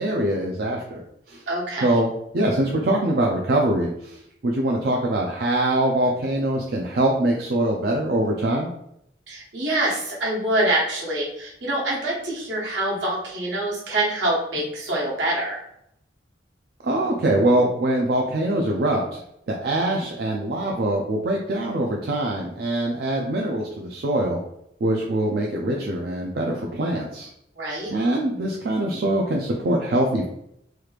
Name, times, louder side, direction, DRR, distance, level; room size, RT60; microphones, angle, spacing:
voice 1, 0.0-1.4 1.8-2.1 2.3-8.7 16.8-19.2 19.5-24.4 24.8-27.3 27.9-30.2, right 1 dB, 55° right, -1 dB, 0.4 m, -23 dB
voice 2, 1.5-2.0 9.3-15.6 27.6-27.9, right 1 dB, 80° right, -4 dB, 1.2 m, -25 dB
3.1 x 2.4 x 3.3 m, 0.76 s
head